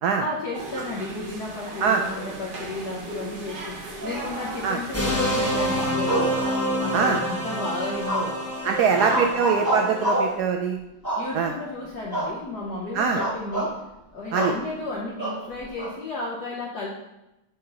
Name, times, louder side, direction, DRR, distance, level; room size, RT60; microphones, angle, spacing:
voice 1, 0.2-6.4 6.8-8.4 8.7-9.4 11.2-13.8 14.1-16.9, left 2 dB, 55° left, -3 dB, 1.4 m, -33 dB
sound 1, 0.5-5.9, right 1 dB, 35° right, 0.9 m, -37 dB
sound 2, 4.9-10.3, equal, 10° left, 0.6 m, -27 dB
sound 3, 6.0-7.1 8.0-8.5 8.9-10.4 11.0-11.6 12.1-12.4 12.7-12.8 13.2-13.7 14.3-14.6 15.2-15.9, right 1 dB, 10° right, 2.1 m, -27 dB
voice 2, 8.6-10.8 11.3-11.5 12.9-13.2 14.3-14.5, right 6 dB, 75° right, 3 dB, 0.9 m, -22 dB
8.5 x 4.3 x 5.6 m, 0.92 s
omnidirectional pair, 2.3 m